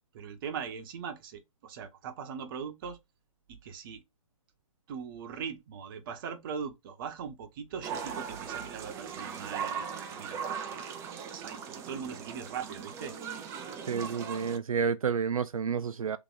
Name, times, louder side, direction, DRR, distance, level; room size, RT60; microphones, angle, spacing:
voice 1, 0.1-3.0 3.5-4.0 4.9-13.2, right 7 dB, 40° right, 1.0 m, -40 dB
sound 1, 7.8-14.6, right 7 dB, 15° right, 0.5 m, -39 dB
voice 2, 13.9-16.2, right 6 dB, 85° right, 0.4 m, -30 dB
3.7 x 2.9 x 3.7 m
figure-of-eight pair, 130°, 17 cm